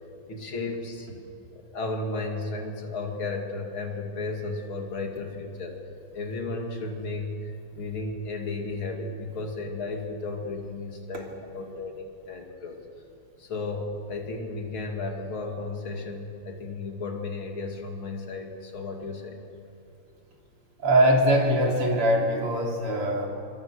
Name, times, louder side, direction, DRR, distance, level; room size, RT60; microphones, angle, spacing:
voice 1, 0.3-1.1 1.5-5.8 6.1-12.8 13.4-19.4, left 3 dB, 65° left, 2 dB, 3.3 m, -34 dB
voice 2, 20.8-23.3, right 1 dB, 85° right, -1 dB, 4.3 m, -22 dB
27.5 x 24.0 x 6.5 m, 2.5 s
omnidirectional pair, 2.4 m